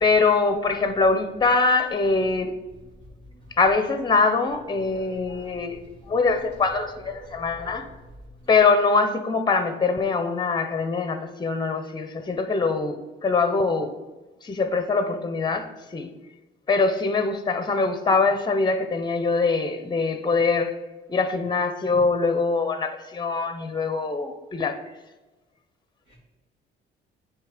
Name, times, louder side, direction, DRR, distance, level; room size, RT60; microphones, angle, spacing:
voice 1, 0.0-2.5 3.6-5.8 6.0-7.9 8.5-13.9 14.4-16.1 16.7-20.8 21.1-24.8, left 4 dB, 20° left, 9 dB, 0.7 m, -23 dB
voice 2, 4.9-5.5 6.3-6.4 7.3-7.8 26.1-26.2, right 1 dB, 45° right, -8 dB, 2.6 m, -44 dB
9.1 x 3.3 x 5.0 m, 1.1 s
cardioid pair, 90°, 20 cm